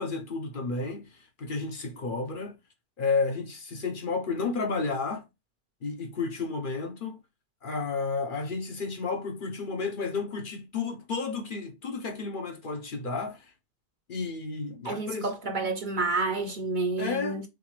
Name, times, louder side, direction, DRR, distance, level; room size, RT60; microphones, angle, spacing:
voice 1, 0.0-2.6 3.0-5.2 5.8-7.2 7.6-13.5 14.1-15.3 17.0-17.4, left 4 dB, 50° left, 0.8 m, -32 dB
voice 2, 14.8-17.4, right 3 dB, 50° right, 0.8 m, -29 dB
6.0 x 2.5 x 3.2 m
omnidirectional pair, 1.2 m